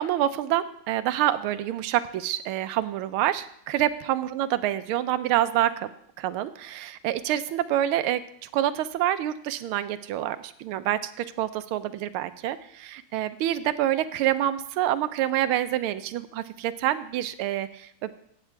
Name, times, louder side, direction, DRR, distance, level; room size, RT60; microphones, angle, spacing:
voice 1, 0.0-5.9 6.2-8.2 8.5-18.1, right 12 dB, 85° right, 12 dB, 1.5 m, -27 dB
15.0 x 8.9 x 4.5 m, 0.69 s
omnidirectional pair, 2.3 m